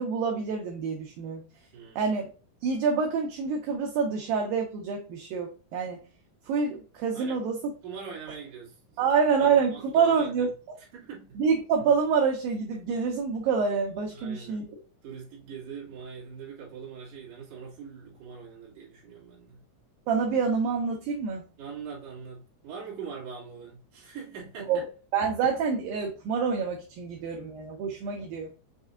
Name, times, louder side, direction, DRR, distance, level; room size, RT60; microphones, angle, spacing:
voice 1, 0.0-1.4 2.0-2.3 2.6-6.0 6.5-7.6 9.0-10.8 11.4-14.6 20.1-21.4 24.7-24.9 25.1-28.5, right 5 dB, 75° right, 2.2 m, -27 dB
voice 2, 1.7-2.1 7.1-7.4 7.8-9.0 9.4-10.5 10.8-11.4 14.1-14.7 15.0-19.6 21.6-24.9, right 6 dB, 50° right, 2.4 m, -42 dB
6.4 x 2.7 x 2.4 m
omnidirectional pair, 4.7 m